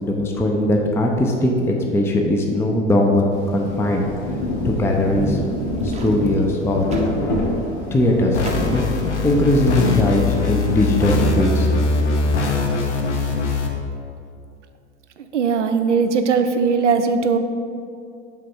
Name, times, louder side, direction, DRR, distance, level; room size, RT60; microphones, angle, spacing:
voice 1, 0.0-4.4 4.6-5.4 5.8-6.8 7.9-8.8 9.2-11.7, left 1 dB, 5° left, 1 dB, 0.6 m, -20 dB
Rain, 3.3-10.6, left 1 dB, 50° left, 1.6 m, -27 dB
sound 1, 5.3-7.2 7.5-7.7 8.4-9.7, right 2 dB, 20° right, 0.8 m, -35 dB
sound 2, 8.3-13.7, left 3 dB, 75° left, 0.9 m, -21 dB
voice 2, 15.3-17.4, right 5 dB, 80° right, 8 dB, 0.6 m, -19 dB
7.5 x 3.6 x 5.4 m, 2.5 s
figure-of-eight pair, 75°, 35 cm